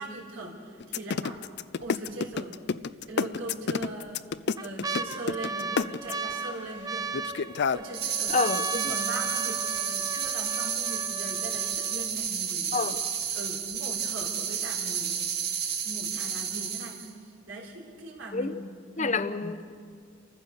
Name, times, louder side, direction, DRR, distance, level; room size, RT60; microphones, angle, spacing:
voice 1, 0.0-1.4 1.8-2.5 3.1-4.2 4.6-7.1 7.7-8.3 8.7-12.9 13.3-18.6 19.0-19.1, right 2 dB, 75° right, -2 dB, 4.0 m, -40 dB
sound 1, 0.8-6.3 7.1-7.8, left 5 dB, 60° left, 0.5 m, -28 dB
sound 2, 1.4-1.8 2.3-2.4 3.3-3.8 4.3-12.3 13.0-13.1 13.2-13.7 14.2-14.3, right 4 dB, 20° right, 0.6 m, -36 dB
sound 3, 7.9-17.1, right 7 dB, 55° right, 1.6 m, -31 dB
voice 2, 8.3-8.9 12.7-13.0 18.3-18.6 19.0-19.6, left 4 dB, 40° left, 11 dB, 0.9 m, -28 dB
29.0 x 15.0 x 6.8 m, 2.2 s
head